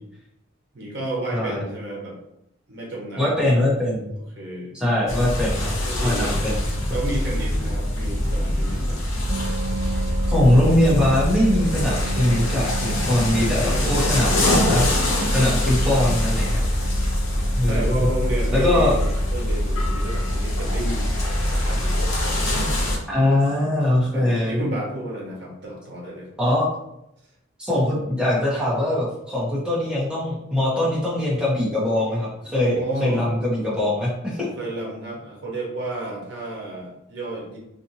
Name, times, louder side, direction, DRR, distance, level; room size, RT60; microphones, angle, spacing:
voice 1, 0.7-2.2 2.7-3.6 4.4-4.8 5.8-6.4 6.9-9.0 13.6-14.7 15.8-16.3 17.6-21.1 21.5-22.1 23.2-23.3 24.1-26.3 30.7-31.0 32.7-33.3 34.3-37.6, right 1 dB, 55° right, -3 dB, 0.9 m, -32 dB
voice 2, 1.3-1.6 3.2-4.1 4.7-5.7 6.0-6.6 10.3-14.9 15.3-16.6 17.6-18.1 18.5-18.9 23.1-24.6 26.4-26.7 27.6-34.5, left 1 dB, 5° right, -7 dB, 0.9 m, -22 dB
sound 1, 5.1-23.0, left 1 dB, 70° left, 0.9 m, -23 dB
sound 2, 9.3-24.2, right 5 dB, 35° right, 0.3 m, -37 dB
2.6 x 2.5 x 2.8 m, 0.82 s
head